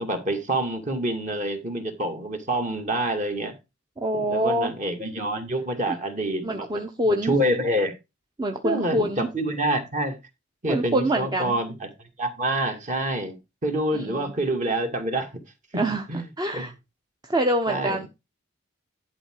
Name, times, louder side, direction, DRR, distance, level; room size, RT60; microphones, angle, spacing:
voice 1, 0.0-3.6 4.3-7.9 8.6-10.2 10.6-11.9 12.2-13.4 13.6-15.3 15.7-16.3 16.5-16.7 17.7-18.0, right 1 dB, 40° right, 2.2 m, -27 dB
voice 2, 4.0-4.7 6.4-7.3 8.4-9.3 10.7-11.6 13.9-14.3 15.8-16.0 16.4-16.7 17.2-18.1, right 1 dB, 20° right, 0.9 m, -25 dB
11.5 x 4.9 x 4.6 m
head